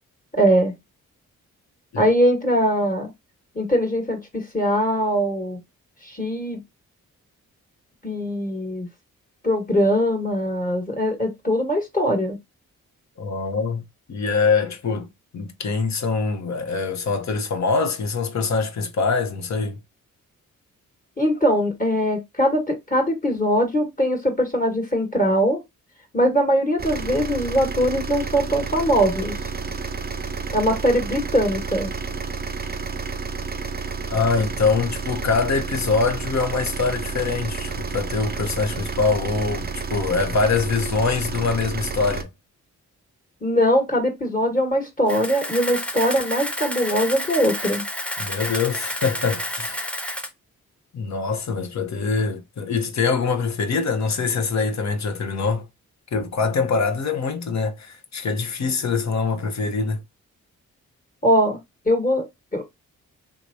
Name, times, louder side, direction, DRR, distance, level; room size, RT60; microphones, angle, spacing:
voice 1, 0.3-0.7 2.0-3.1 3.5-5.6 6.0-6.6 8.0-8.9 9.4-12.4 21.2-25.6 26.1-29.3 30.5-31.9 43.4-47.8 61.2-61.6 61.8-62.3 62.5-62.6, equal, 20° left, 1.5 m, -21 dB
voice 2, 13.2-13.8 14.1-15.1 15.3-19.8 34.1-42.3 48.2-49.8 50.9-55.7 56.1-60.0, left 4 dB, 50° left, 0.9 m, -24 dB
sound 1, 26.8-42.2, right 4 dB, 25° right, 0.6 m, -30 dB
Camera, 45.1-50.3, equal, 5° left, 0.8 m, -30 dB
3.5 x 2.9 x 2.6 m
supercardioid pair, 40°, 37 cm